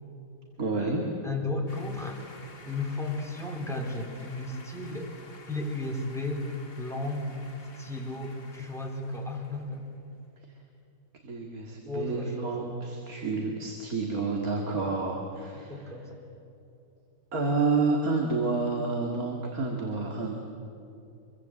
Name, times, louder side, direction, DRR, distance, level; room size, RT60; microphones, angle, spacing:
voice 1, 0.6-1.0 10.4-10.6 11.2-15.9 17.3-20.3, right 3 dB, 60° right, 1 dB, 2.5 m, -29 dB
voice 2, 1.2-2.2 2.7-5.1 5.5-6.5 6.8-7.2 7.8-9.8 11.9-12.7 15.7-16.1, left 2 dB, ahead, 0 dB, 3.7 m, -34 dB
sound 1, 1.7-10.0, left 3 dB, 75° left, 2.9 m, -51 dB
25.5 x 23.5 x 7.8 m, 2.8 s
omnidirectional pair, 1.8 m